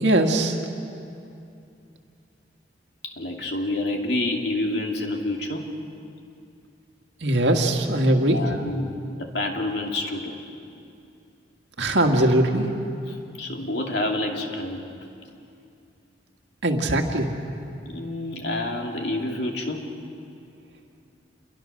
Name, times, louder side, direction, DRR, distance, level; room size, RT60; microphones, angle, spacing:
voice 1, 0.0-0.6 7.2-8.4 11.8-12.7 16.6-17.3, right 1 dB, 70° right, 2 dB, 2.0 m, -20 dB
voice 2, 3.0-5.7 8.3-10.4 13.1-14.8 17.9-19.8, left 2 dB, 65° left, 2 dB, 2.5 m, -28 dB
27.5 x 23.0 x 6.6 m, 2.5 s
head